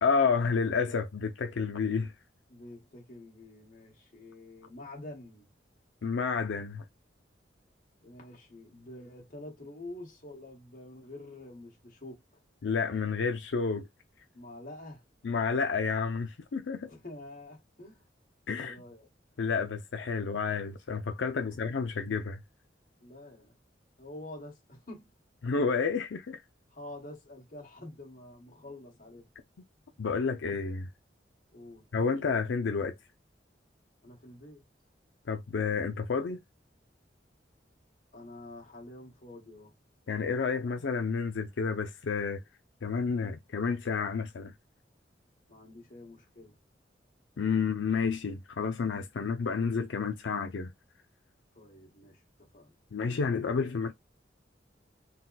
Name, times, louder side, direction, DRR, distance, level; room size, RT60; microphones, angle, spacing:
voice 1, 0.0-2.1 6.0-6.8 12.6-13.9 15.2-16.9 18.5-18.8 19.4-22.4 25.4-26.4 30.0-30.9 31.9-32.9 35.3-36.4 40.1-42.4 42.8-44.5 47.4-50.7 52.9-53.9, left 5 dB, 90° left, 0.5 m, -30 dB
voice 2, 2.5-5.5 8.0-12.2 14.3-15.0 16.9-18.0 18.6-19.1 23.0-23.6 24.0-25.1 26.7-29.3 31.5-31.8 34.0-34.6 38.1-39.7 45.5-46.6 51.5-52.2 52.5-52.8, left 1 dB, 45° left, 1.7 m, -47 dB
3.9 x 2.2 x 4.0 m
head